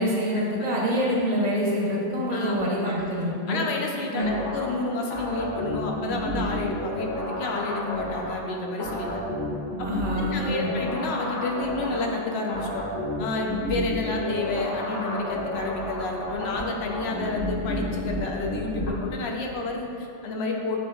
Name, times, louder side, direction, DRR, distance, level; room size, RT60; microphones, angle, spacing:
voice 1, 0.0-3.6 4.1-4.4 9.8-10.7, equal, 45° right, -3 dB, 0.7 m, -26 dB
voice 2, 3.5-9.2 10.1-12.8 13.2-20.8, left 3 dB, 70° left, 0 dB, 0.8 m, -30 dB
sound 1, 4.2-18.9, equal, 90° left, 1.1 m, -31 dB
7.5 x 2.6 x 2.3 m, 2.7 s
omnidirectional pair, 1.2 m